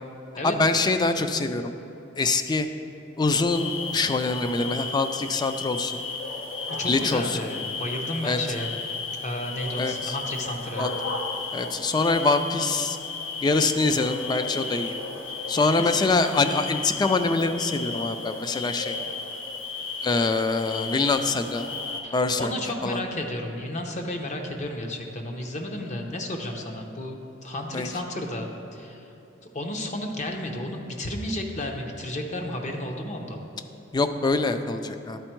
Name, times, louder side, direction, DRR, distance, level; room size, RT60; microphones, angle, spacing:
voice 1, 0.4-1.7 2.2-2.7 3.2-6.0 6.9-7.4 8.2-8.4 9.8-10.2 10.8-10.9 11.5-13.0 13.4-15.0 15.5-19.0 20.0-21.7 22.1-22.5 22.8-23.0 27.7-27.9 33.9-35.2, left 3 dB, 20° left, 9 dB, 0.3 m, -24 dB
sound 1, 3.5-22.0, left 4 dB, 85° left, 0.8 m, -34 dB
voice 2, 6.8-8.7 9.2-10.8 15.3-16.0 22.0-29.1 29.4-33.4, left 1 dB, 40° left, 3 dB, 0.7 m, -32 dB
11.5 x 4.4 x 4.5 m, 2.9 s
head